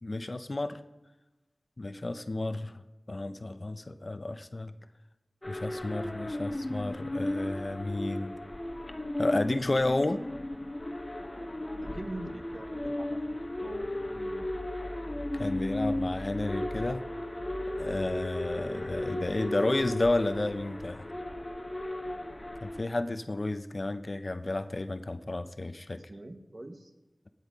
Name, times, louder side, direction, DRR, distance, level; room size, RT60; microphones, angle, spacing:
voice 1, 0.0-0.8 1.8-2.8 3.1-4.7 5.5-8.3 9.2-10.2 15.3-17.0 17.8-21.1 22.6-26.0, left 2 dB, 50° left, 11 dB, 0.7 m, -31 dB
sound 1, 5.4-22.8, left 1 dB, 30° left, 1.1 m, -35 dB
voice 2, 11.8-13.3 13.6-14.5 26.1-26.9, right 1 dB, 50° right, 7 dB, 1.3 m, -43 dB
16.0 x 9.4 x 5.2 m, 1.1 s
cardioid pair, 40°, 0 cm